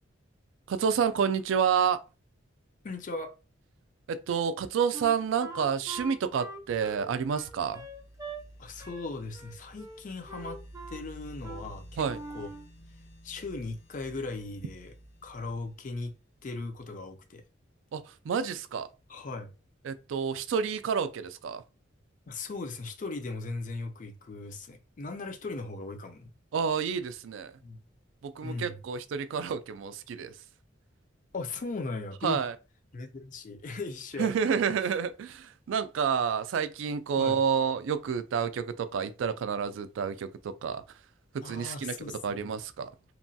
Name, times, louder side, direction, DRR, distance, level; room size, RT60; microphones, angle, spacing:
voice 1, 0.7-2.0 4.1-7.9 12.0-12.2 17.9-18.9 19.8-21.6 26.5-27.6 28.2-30.4 32.2-32.6 34.2-41.0 41.4-41.9 42.2-42.9, right 6 dB, 75° right, 0.3 m, -29 dB
voice 2, 2.8-3.4 8.6-10.6 10.9-12.1 12.3-12.5 13.2-14.9 15.2-16.2 16.4-17.4 19.1-19.5 22.3-26.3 27.6-27.8 28.4-28.8 31.3-32.4 32.9-34.3 37.2-37.4 41.4-42.5, left 3 dB, 40° left, 0.5 m, -38 dB
Wind instrument woodwind instrument, 4.9-8.4 8.8-9.1 9.3-10.0 10.3-11.0 11.4-11.7 12.0-12.7, right 2 dB, 20° right, 0.6 m, -43 dB
sound 1, 6.6-17.0, right 1 dB, 75° left, 0.7 m, -52 dB
2.9 x 2.2 x 2.7 m
head